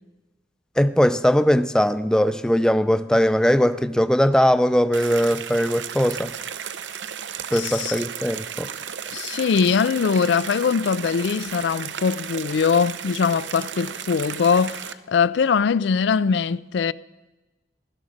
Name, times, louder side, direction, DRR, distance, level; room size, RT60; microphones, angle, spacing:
voice 1, 0.8-6.3 7.5-8.7, equal, 5° left, 0.4 m, -20 dB
sound 1, 4.9-14.9, right 8 dB, 90° right, 0.7 m, -34 dB
voice 2, 7.5-8.0 9.1-16.9, left 6 dB, 80° left, 0.4 m, -22 dB
16.0 x 12.5 x 6.4 m
head